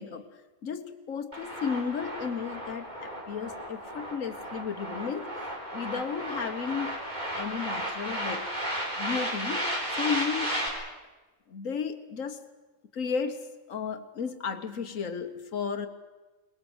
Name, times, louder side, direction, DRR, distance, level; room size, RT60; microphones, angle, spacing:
voice 1, 0.0-7.0 7.3-8.5 9.0-10.5 11.5-12.4 12.9-15.9, left 6 dB, 80° left, 8 dB, 1.6 m, -34 dB
sound 1, 1.3-10.7, equal, 35° right, 4.5 m, -34 dB
22.5 x 21.0 x 7.9 m, 1.2 s
omnidirectional pair, 1.3 m